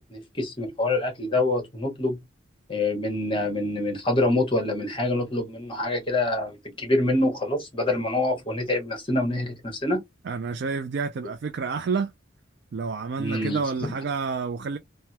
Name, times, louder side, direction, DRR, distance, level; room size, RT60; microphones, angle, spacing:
voice 1, 0.1-2.2 2.7-10.0 13.2-13.9, left 2 dB, 25° left, 1.2 m, -26 dB
voice 2, 10.3-12.1 12.7-14.8, right 5 dB, 55° right, 0.3 m, -29 dB
3.3 x 2.1 x 2.8 m
head